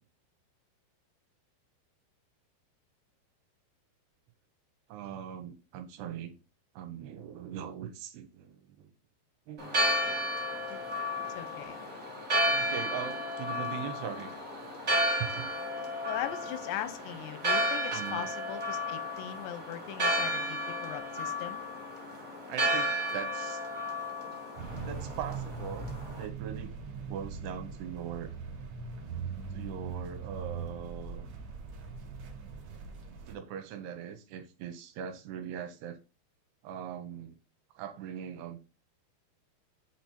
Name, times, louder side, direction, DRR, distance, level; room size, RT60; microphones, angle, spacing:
voice 1, 4.9-6.4 6.8-8.9 9.5-9.8 12.5-14.4 15.2-15.5 17.9-18.3 22.5-23.6 24.9-26.8 27.1-28.3 29.5-31.5 33.3-36.0 36.6-37.4 37.8-38.6, right 8 dB, 80° right, 8 dB, 2.6 m, -41 dB
Church bell, 9.6-26.2, equal, 35° right, 1.0 m, -33 dB
voice 2, 11.3-11.8 16.1-21.6, left 11 dB, 85° left, 11 dB, 2.8 m, -39 dB
sound 1, 24.6-33.3, right 5 dB, 55° right, 2.0 m, -40 dB
7.6 x 3.0 x 4.3 m, 0.30 s
omnidirectional pair, 5.0 m